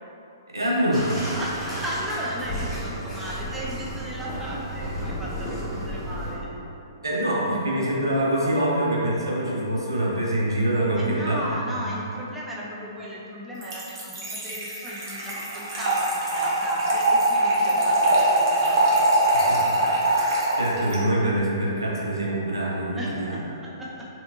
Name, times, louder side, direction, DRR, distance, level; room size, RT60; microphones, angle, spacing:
voice 1, 0.5-1.2 7.0-11.4 19.5-19.7 20.1-23.4, right 1 dB, 90° right, -5 dB, 0.7 m, -25 dB
Bathtub (filling or washing), 0.9-6.3, equal, 10° left, 1.0 m, -33 dB
voice 2, 1.3-6.5 10.9-18.9 22.9-24.1, equal, 5° right, -6 dB, 0.5 m, -35 dB
Trickle dribble / Fill (with liquid), 13.6-21.0, right 1 dB, 55° right, 0.8 m, -22 dB
3.3 x 2.8 x 2.7 m, 2.8 s
figure-of-eight pair, 120°, 2 cm